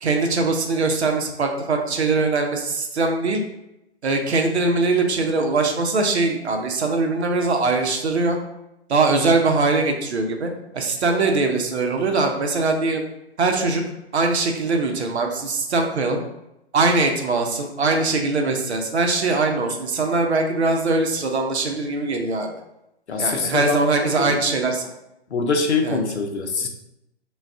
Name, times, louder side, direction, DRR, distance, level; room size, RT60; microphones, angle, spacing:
voice 1, 0.0-3.4 4.0-8.4 8.9-13.0 13.4-13.8 14.1-16.2 16.7-22.5 23.2-24.9 25.8-26.0, right 3 dB, 75° right, 3 dB, 0.7 m, -21 dB
voice 2, 23.1-23.8 24.2-24.4 25.3-26.7, left 4 dB, 80° left, 4 dB, 0.6 m, -23 dB
2.4 x 2.3 x 3.3 m, 0.87 s
figure-of-eight pair, 130°, 33 cm